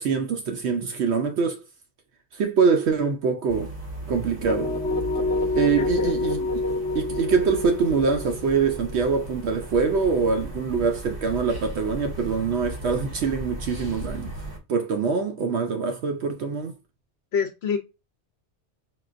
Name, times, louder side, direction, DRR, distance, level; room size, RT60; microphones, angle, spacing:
voice 1, 0.0-1.6 2.3-3.7 4.1-4.7 5.5-6.6 6.9-14.3 14.7-16.7, right 5 dB, 70° right, 0.8 m, -24 dB
sound 1, 3.5-14.6, right 1 dB, 35° right, 1.9 m, -37 dB
sound 2, 4.5-10.3, left 2 dB, 5° left, 0.9 m, -28 dB
voice 2, 5.8-6.1 17.3-17.8, left 6 dB, 70° left, 0.9 m, -26 dB
5.6 x 2.4 x 2.4 m
omnidirectional pair, 1.2 m